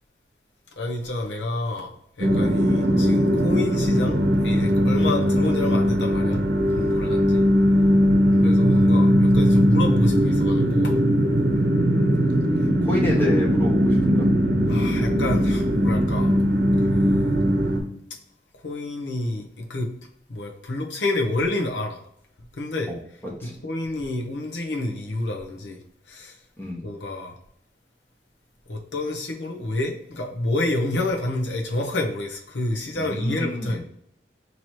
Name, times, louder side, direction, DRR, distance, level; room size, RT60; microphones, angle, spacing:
voice 1, 0.8-6.4 6.7-7.4 8.4-11.0 12.6-12.7 13.0-13.1 14.7-16.4 16.9-17.4 18.6-19.9 20.3-22.0 22.4-22.9 23.4-25.8 26.1-26.4 26.8-27.4 28.7-33.8, left 2 dB, 90° left, 2 dB, 0.8 m, -29 dB
sound 1, 2.2-17.8, equal, 65° right, 0.8 m, -19 dB
voice 2, 11.5-12.3 12.8-14.3 22.9-23.0 23.4-23.5 26.6-26.8 33.0-33.8, left 1 dB, 10° left, -3 dB, 0.9 m, -29 dB
3.1 x 2.9 x 4.1 m, 0.72 s
head